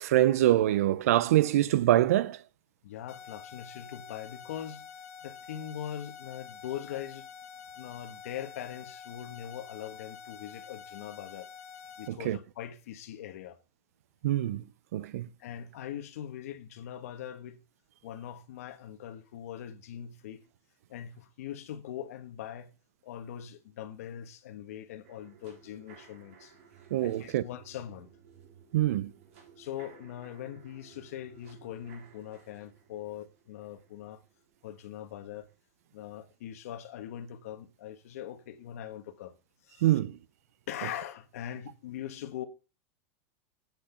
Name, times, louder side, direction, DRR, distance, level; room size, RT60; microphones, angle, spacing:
voice 1, 0.0-2.4 12.1-12.4 14.2-14.7 14.9-15.3 26.9-27.4 28.7-29.1 39.8-40.2, right 13 dB, 75° right, 0.6 m, -25 dB
voice 2, 2.8-4.8 5.2-7.3 7.8-11.5 12.0-13.6 15.4-17.6 18.0-20.4 20.9-22.7 23.0-26.5 27.0-28.1 29.6-34.2 34.6-35.5 35.9-39.3 39.6-39.9 40.7-42.5, left 10 dB, 70° left, 1.5 m, -41 dB
sound 1, 3.1-12.1, left 6 dB, 90° left, 1.9 m, -48 dB
sound 2, 25.0-35.1 35.5-35.6, right 7 dB, 60° right, 3.5 m, -57 dB
9.0 x 6.1 x 5.7 m
supercardioid pair, 180°, 8 cm